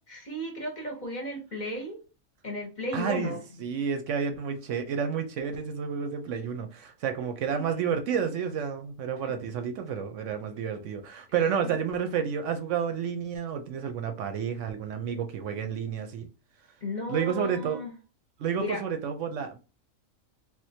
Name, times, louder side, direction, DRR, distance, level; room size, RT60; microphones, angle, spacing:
voice 1, 0.1-2.0 2.4-3.6 7.5-8.0 11.6-11.8 16.8-17.9 18.6-18.8, left 1 dB, 40° left, 0.8 m, -35 dB
voice 2, 2.9-16.3 17.1-17.8 18.4-19.6, right 7 dB, 70° right, 0.8 m, -30 dB
3.5 x 2.5 x 2.7 m
omnidirectional pair, 1.5 m